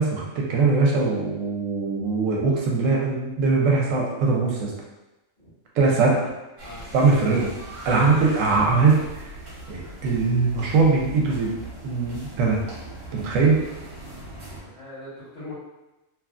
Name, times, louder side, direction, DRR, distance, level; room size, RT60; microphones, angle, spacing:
voice 1, 0.0-4.7 5.8-6.2 6.9-7.5 7.8-9.3 9.7-11.5 11.8-12.6 13.1-13.6, right 4 dB, 80° right, -1 dB, 1.0 m, -21 dB
sound 1, 6.6-14.6, right 1 dB, 60° right, 1.1 m, -40 dB
voice 2, 14.5-15.5, left 2 dB, 55° left, -9 dB, 1.6 m, -41 dB
3.0 x 2.3 x 2.4 m, 1.0 s
omnidirectional pair, 1.4 m